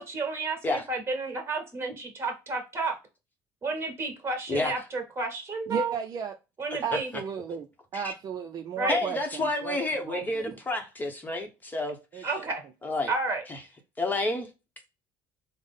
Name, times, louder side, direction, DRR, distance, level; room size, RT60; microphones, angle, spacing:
voice 1, 0.0-3.0 3.6-5.9 6.6-7.1 8.8-9.1 12.2-12.6 13.1-13.4, right 3 dB, 30° right, 1.6 m, -31 dB
voice 2, 5.7-6.3 6.8-7.7 7.9-9.8 10.1-10.6 12.1-12.5, right 6 dB, 45° right, 0.5 m, -34 dB
voice 3, 8.9-12.3 12.8-13.1 13.5-13.6 14.0-14.5, left 2 dB, 20° left, 0.9 m, -30 dB
3.7 x 2.1 x 3.5 m
cardioid pair, 105°, 9 cm